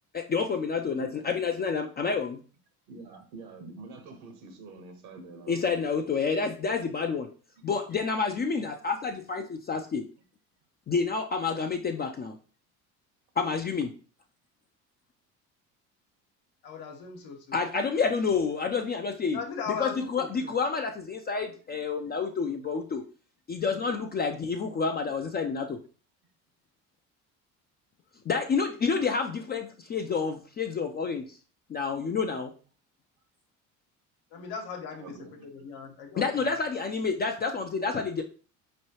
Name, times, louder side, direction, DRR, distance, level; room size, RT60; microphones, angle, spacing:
voice 1, 0.1-2.4 5.5-7.3 7.6-10.0 10.9-12.4 13.4-13.9 17.5-19.4 19.7-23.0 23.5-25.8 28.3-31.4 31.7-32.5 36.2-38.2, left 5 dB, 25° left, 3 dB, 0.4 m, -29 dB
voice 2, 2.9-5.8 21.5-21.6 22.2-22.3 35.0-35.5, right 3 dB, 70° right, 6 dB, 1.1 m, -46 dB
voice 3, 16.6-17.6 19.3-20.5 34.3-35.2 35.5-36.5, left 6 dB, 70° left, 2 dB, 1.1 m, -38 dB
4.4 x 3.2 x 2.8 m, 0.38 s
hypercardioid pair, 70°, 41 cm